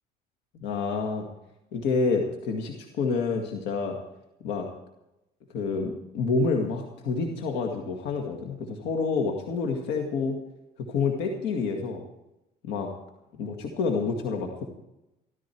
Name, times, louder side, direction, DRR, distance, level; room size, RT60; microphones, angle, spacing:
voice 1, 0.5-1.3 1.7-4.0 4.4-4.7 5.5-10.4 10.8-12.0 12.7-12.9 13.4-14.6, left 4 dB, 90° left, 2 dB, 2.1 m, -28 dB
15.0 x 14.5 x 4.6 m, 0.90 s
cardioid pair, 110°, 17 cm